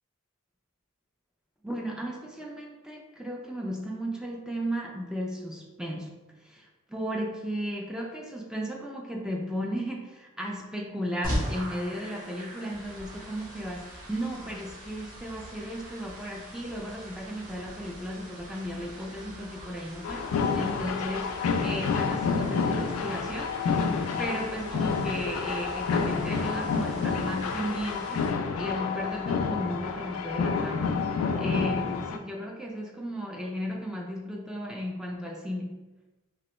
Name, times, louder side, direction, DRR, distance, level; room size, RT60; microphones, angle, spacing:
voice 1, 1.6-20.3 20.5-21.3 21.6-23.6 23.9-30.9 31.4-35.8, equal, 5° right, -1 dB, 0.3 m, -35 dB
sound 1, 11.2-28.3, equal, 40° right, 1.0 m, -41 dB
sound 2, 20.0-32.2, left 5 dB, 90° left, 0.3 m, -29 dB
3.0 x 2.9 x 3.0 m, 1.1 s
head